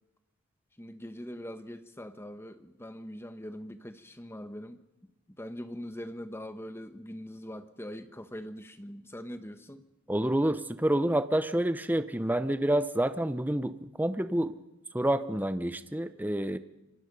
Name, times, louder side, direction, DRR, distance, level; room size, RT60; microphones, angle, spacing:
voice 1, 0.8-4.8 5.4-9.8, equal, 10° left, 10 dB, 1.1 m, -42 dB
voice 2, 10.1-14.5 14.9-16.6, right 1 dB, 10° right, 12 dB, 0.7 m, -28 dB
26.5 x 23.5 x 5.4 m, 0.98 s
head